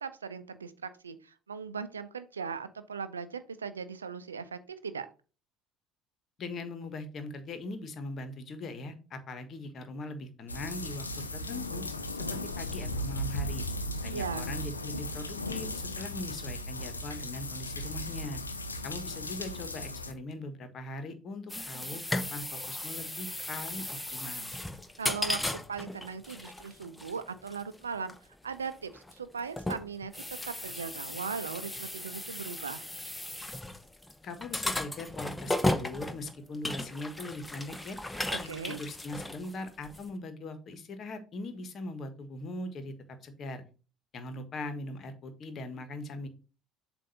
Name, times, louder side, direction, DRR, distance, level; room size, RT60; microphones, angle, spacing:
voice 1, 0.0-5.1 14.1-14.5 25.0-28.1 28.4-32.9 38.3-38.8, right 5 dB, 85° right, 12 dB, 0.5 m, -39 dB
voice 2, 6.4-11.1 11.3-11.8 12.1-13.6 14.0-18.4 18.8-24.5 34.2-38.0 38.4-43.6 44.1-46.3, left 2 dB, 45° left, 10 dB, 1.2 m, -40 dB
sound 1, 10.5-20.1, left 1 dB, 90° left, 0.5 m, -36 dB
sound 2, 21.5-40.1, left 1 dB, 10° left, 0.8 m, -36 dB
7.5 x 2.6 x 5.5 m, 0.35 s
figure-of-eight pair, 60°, 0 cm